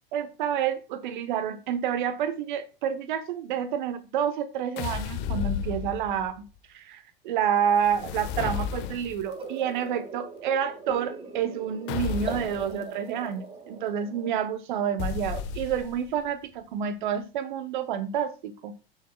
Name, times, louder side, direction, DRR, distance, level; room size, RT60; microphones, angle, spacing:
voice 1, 0.1-6.4 6.7-18.7, right 8 dB, 50° right, 1.2 m, -29 dB
sound 1, 4.8-6.4 7.8-9.3 11.9-12.7 15.0-16.1, left 8 dB, 35° left, 1.3 m, -33 dB
sound 2, 9.3-14.3, right 4 dB, 15° right, 1.7 m, -40 dB
16.5 x 6.7 x 2.3 m
figure-of-eight pair, 95°, 31 cm